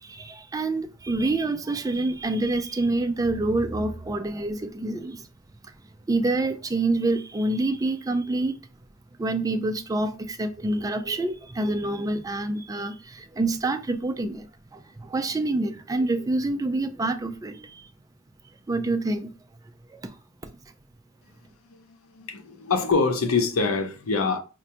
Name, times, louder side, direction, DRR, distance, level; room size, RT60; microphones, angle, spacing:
voice 1, 0.0-5.3 5.6-5.7 6.1-8.5 9.2-14.5 14.7-17.9 18.7-19.3 19.9-20.1, right 2 dB, 15° right, 0.3 m, -27 dB
voice 2, 21.7-24.4, left 4 dB, 90° left, 0.7 m, -25 dB
4.9 x 2.2 x 2.8 m
head